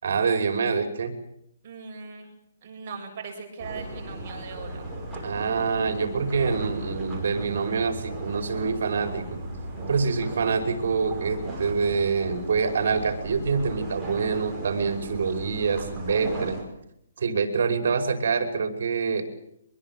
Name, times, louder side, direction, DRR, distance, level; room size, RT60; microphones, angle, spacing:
voice 1, 0.0-1.1 5.2-9.3 9.9-16.6 17.2-19.2, right 5 dB, 50° right, 7 dB, 5.5 m, -26 dB
voice 2, 1.6-2.3 2.6-5.0, right 5 dB, 30° right, 1 dB, 7.6 m, -39 dB
sound 1, 3.6-16.6, right 2 dB, ahead, 5.9 m, -36 dB
24.0 x 22.0 x 7.5 m, 0.75 s
hypercardioid pair, 175°, 0 cm